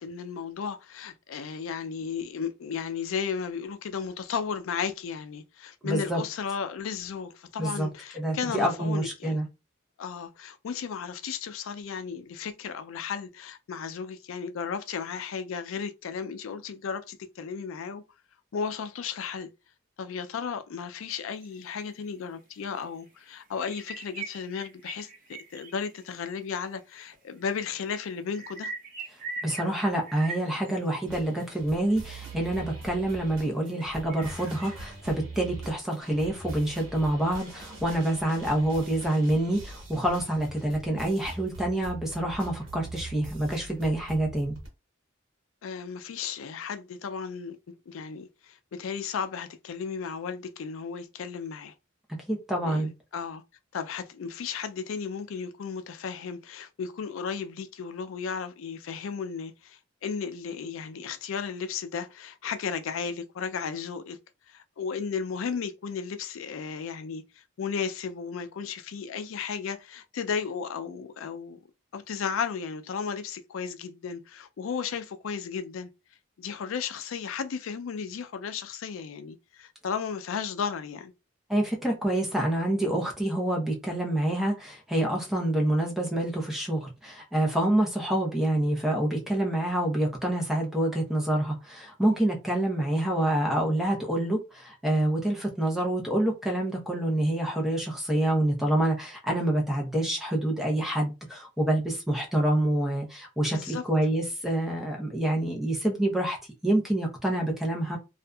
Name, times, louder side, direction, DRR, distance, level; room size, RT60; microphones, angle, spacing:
voice 1, 0.0-9.4 10.0-18.0 18.5-19.5 20.0-28.7 45.6-51.7 52.6-53.4 53.7-64.2 64.5-71.6 71.9-75.9 76.4-81.1 103.5-103.8, left 6 dB, 85° left, 0.4 m, -34 dB
voice 2, 5.8-6.2 7.6-7.9 8.1-9.4 29.4-44.5 52.3-52.9 81.5-106.4 106.6-108.0, right 1 dB, ahead, 0.7 m, -27 dB
sound 1, 21.4-21.5 22.0-22.1 22.7-22.8 23.1-23.2 23.5-26.3 27.1-27.2 27.5-31.1 31.8-33.3 33.8-35.0, right 3 dB, 45° right, 0.7 m, -42 dB
sound 2, 31.1-44.7, right 2 dB, 85° right, 1.1 m, -43 dB
2.6 x 2.4 x 2.2 m
head